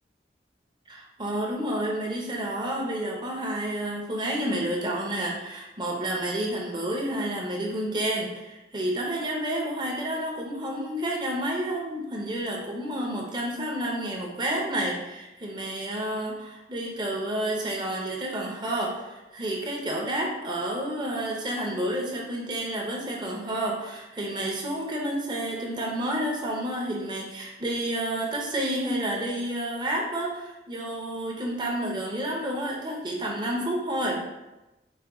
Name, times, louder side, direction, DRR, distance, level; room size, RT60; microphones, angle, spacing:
voice 1, 0.9-34.2, right 1 dB, 25° right, -2 dB, 0.7 m, -30 dB
4.3 x 2.2 x 3.5 m, 1.0 s
head